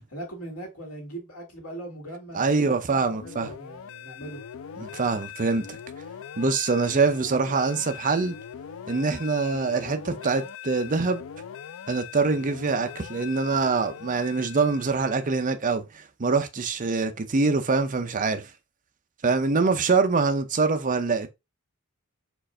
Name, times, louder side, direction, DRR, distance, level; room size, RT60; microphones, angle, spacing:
voice 1, 0.1-4.4 19.6-19.7, right 1 dB, 85° left, 1.9 m, -39 dB
voice 2, 2.3-3.5 4.8-5.8 6.4-8.3 8.9-11.2 11.9-18.5 19.2-21.3, right 4 dB, 35° right, 0.6 m, -24 dB
sound 1, 3.2-15.3, left 8 dB, 65° left, 0.4 m, -41 dB
4.5 x 2.5 x 4.2 m
head